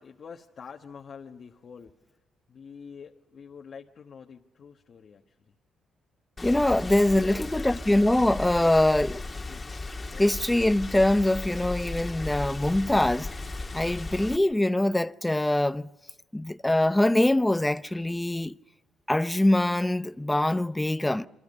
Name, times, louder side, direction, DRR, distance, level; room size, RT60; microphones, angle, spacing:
voice 1, 0.0-2.0 2.5-5.5 7.1-7.8 8.6-9.7 10.0-10.3, left 6 dB, 50° left, 1.3 m, -46 dB
Rain, 6.4-14.4, left 2 dB, 25° left, 1.7 m, -36 dB
voice 2, 6.4-9.1 10.2-13.3 13.7-15.9 16.3-18.5 19.1-21.3, left 1 dB, 10° left, 0.7 m, -23 dB
28.0 x 25.0 x 5.4 m
cardioid pair, 90°, 0 cm